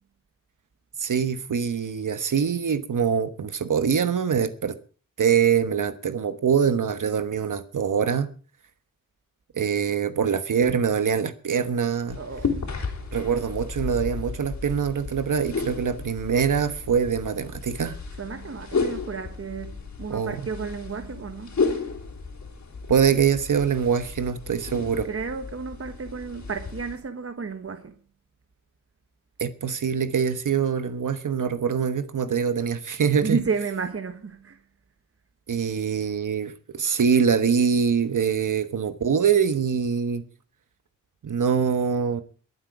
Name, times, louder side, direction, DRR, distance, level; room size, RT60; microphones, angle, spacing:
voice 1, 1.0-4.7 5.2-8.3 9.5-12.2 13.1-18.0 20.1-20.4 22.9-25.1 29.4-33.4 35.5-40.2 41.2-42.2, right 7 dB, 65° right, 1.2 m, -24 dB
sound 1, 12.1-27.0, left 4 dB, 60° left, 3.7 m, -33 dB
voice 2, 12.2-12.6 18.2-21.5 25.0-27.9 33.2-34.6, right 5 dB, 45° right, 1.3 m, -32 dB
23.0 x 8.1 x 4.9 m
wide cardioid pair, 105°, 33 cm